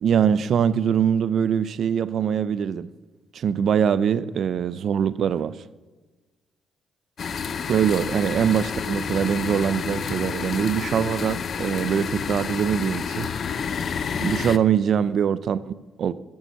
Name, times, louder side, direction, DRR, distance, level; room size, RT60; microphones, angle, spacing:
voice 1, 0.0-2.9 3.3-5.6 7.7-13.3 14.2-16.1, right 8 dB, 60° right, 0.5 m, -23 dB
sound 1, 7.2-14.6, left 6 dB, 50° left, 0.5 m, -29 dB
10.5 x 7.0 x 7.0 m
cardioid pair, 90°, 0 cm